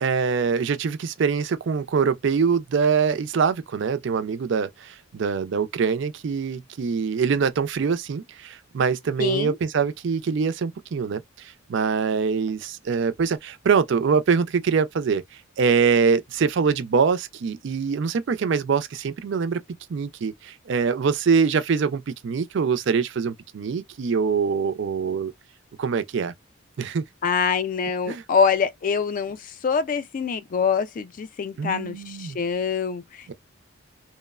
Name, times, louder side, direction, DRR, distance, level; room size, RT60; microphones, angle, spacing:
voice 1, 0.0-15.2 15.6-19.6 19.9-25.3 25.8-26.3 26.8-27.0 28.1-28.2 31.6-32.4 33.3-33.4, right 5 dB, 60° right, 0.4 m, -24 dB
voice 2, 9.2-9.6 27.2-33.3, left 6 dB, 40° left, 0.3 m, -25 dB
3.0 x 2.0 x 2.3 m
head